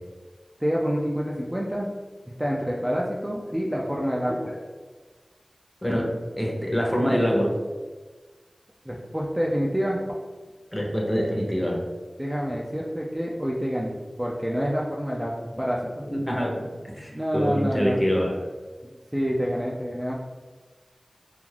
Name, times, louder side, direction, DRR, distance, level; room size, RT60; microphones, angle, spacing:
voice 1, 0.6-1.9 2.4-4.5 8.9-10.0 12.2-16.1 17.1-18.0 19.1-20.1, equal, 10° right, -4 dB, 0.3 m, -27 dB
voice 2, 6.4-7.5 10.7-11.8 16.1-18.3, equal, 15° left, -1 dB, 0.7 m, -25 dB
2.4 x 2.3 x 3.2 m, 1.3 s
wide cardioid pair, 50°, 0 cm